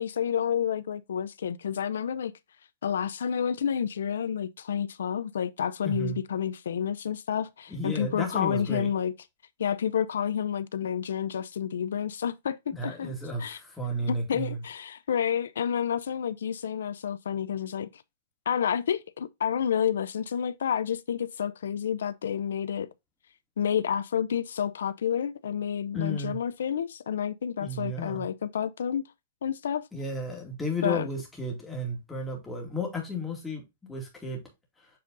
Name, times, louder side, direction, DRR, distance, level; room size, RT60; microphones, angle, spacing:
voice 1, 0.0-2.3 2.8-9.1 9.6-13.1 13.4-13.6 14.1-18.0 18.5-22.9 23.6-29.0 29.4-29.9 30.8-31.1, left 8 dB, 90° left, 0.5 m, -29 dB
voice 2, 5.8-6.2 7.7-8.9 12.7-14.6 25.9-26.4 27.6-28.2 29.9-34.4, equal, 5° left, 2.1 m, -33 dB
7.5 x 3.8 x 3.9 m
hypercardioid pair, 160°, 0 cm